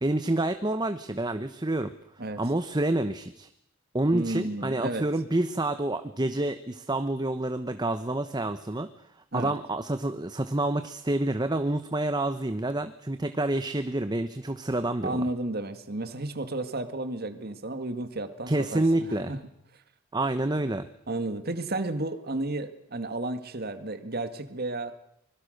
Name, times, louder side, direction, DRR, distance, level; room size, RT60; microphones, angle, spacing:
voice 1, 0.0-1.9 2.4-3.5 3.9-8.9 9.3-15.3 18.5-19.3 20.1-20.9, right 1 dB, 20° right, 10 dB, 0.9 m, -28 dB
voice 2, 4.1-5.0 9.3-9.6 15.0-19.4 21.1-24.9, right 2 dB, 50° right, 9 dB, 2.0 m, -32 dB
25.0 x 21.5 x 6.6 m, 0.77 s
head